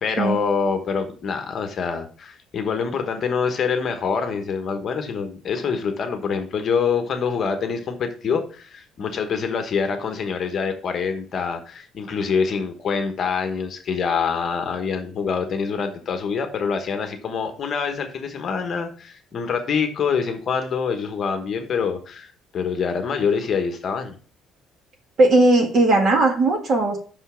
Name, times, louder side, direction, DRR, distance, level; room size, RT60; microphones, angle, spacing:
voice 1, 0.0-24.2, left 6 dB, 35° left, 6 dB, 1.2 m, -25 dB
voice 2, 25.2-27.0, right 2 dB, 35° right, 3 dB, 1.7 m, -17 dB
5.8 x 5.5 x 6.9 m, 0.42 s
cardioid pair, 170°, 0 cm